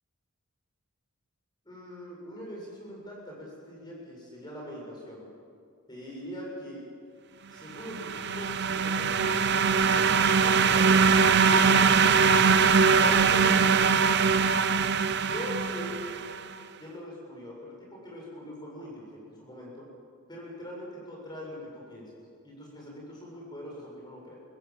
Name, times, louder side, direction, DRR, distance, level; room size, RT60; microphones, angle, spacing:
voice 1, 1.6-5.3 5.9-6.9 7.5-9.3 9.8-10.9 11.4-12.6 13.0-14.3 15.2-16.0 16.8-19.9 20.3-24.4, equal, 20° left, -3 dB, 7.5 m, -42 dB
sound 1, 7.8-16.4, right 5 dB, 50° right, 0.7 m, -22 dB
23.5 x 15.5 x 7.6 m, 2.2 s
head